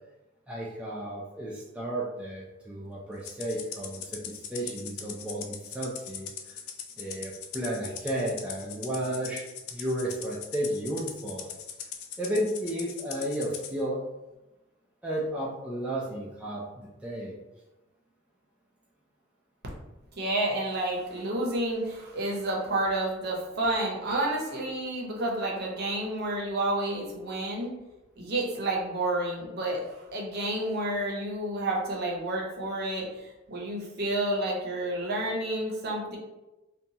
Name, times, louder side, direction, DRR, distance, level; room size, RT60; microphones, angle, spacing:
voice 1, 0.5-6.6 7.0-11.5 12.2-14.0 15.0-17.4, right 1 dB, 5° right, -5 dB, 0.3 m, -33 dB
Rattle (instrument), 3.2-13.7, left 8 dB, 80° left, 0.4 m, -40 dB
voice 2, 20.2-27.7 28.2-36.2, right 1 dB, 50° right, -2 dB, 0.6 m, -30 dB
2.8 x 2.2 x 2.7 m, 1.0 s
head